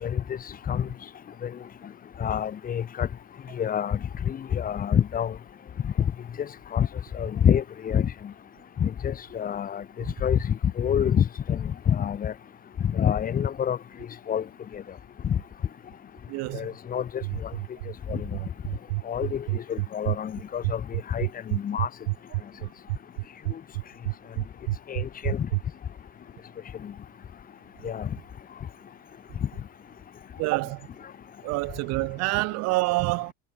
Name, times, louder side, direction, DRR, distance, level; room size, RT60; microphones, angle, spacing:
voice 1, 2.2-3.1 3.6-4.0 4.3-5.3 5.8-5.9 6.7-6.9 7.1-8.1 8.8-9.8 10.2-12.3 12.8-13.8 14.3-14.4 14.7-14.8 15.2-15.4 16.5-17.5 18.1-18.3 19.1-21.9 24.9-25.5 26.8-26.9 27.8-28.1, left 8 dB, 25° left, 3.0 m, -26 dB
voice 2, 16.3-16.7 30.4-30.8 31.4-33.3, right 24 dB, 50° right, 1.1 m, -27 dB
sound 1, 17.2-25.6, right 23 dB, 75° right, 2.5 m, -28 dB
supercardioid pair, 145°, 33 cm